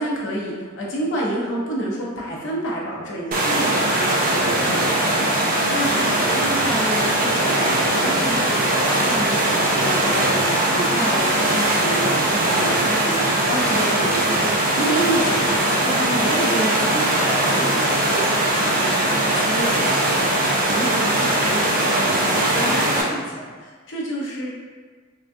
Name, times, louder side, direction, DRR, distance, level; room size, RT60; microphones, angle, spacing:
voice 1, 0.0-5.4 5.7-24.5, right 1 dB, 65° left, -4 dB, 0.7 m, -29 dB
sound 1, 3.3-23.0, right 1 dB, 45° right, 0.5 m, -20 dB
3.7 x 2.3 x 2.6 m, 1.5 s
head